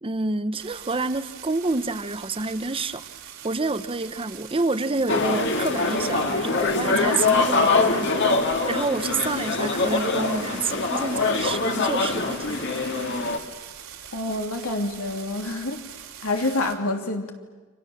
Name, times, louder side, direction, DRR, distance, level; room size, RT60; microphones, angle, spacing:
voice 1, 0.0-3.1 3.4-12.7, right 3 dB, 25° right, 12 dB, 0.8 m, -28 dB
sound 1, 0.6-16.7, right 9 dB, 80° right, 3.2 m, -43 dB
sound 2, 5.1-13.4, left 3 dB, 55° left, 2.2 m, -23 dB
voice 2, 14.1-15.8 16.2-17.3, left 2 dB, 90° left, 3 dB, 3.0 m, -27 dB
30.0 x 25.5 x 7.2 m, 1.3 s
head